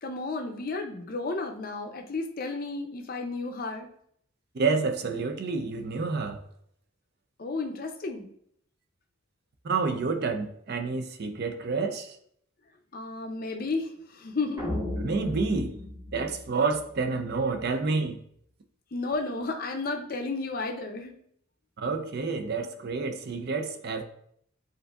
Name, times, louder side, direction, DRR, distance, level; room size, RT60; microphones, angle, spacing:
voice 1, 0.0-3.9 7.4-8.3 12.9-14.8 18.9-21.2, left 3 dB, 45° left, 0.5 m, -33 dB
voice 2, 4.5-6.4 9.6-12.2 15.0-15.8 16.1-18.2 21.8-24.0, right 4 dB, 50° right, 0.4 m, -29 dB
sound 1, 14.6-17.0, left 1 dB, 15° right, 0.9 m, -35 dB
7.7 x 2.6 x 2.3 m
head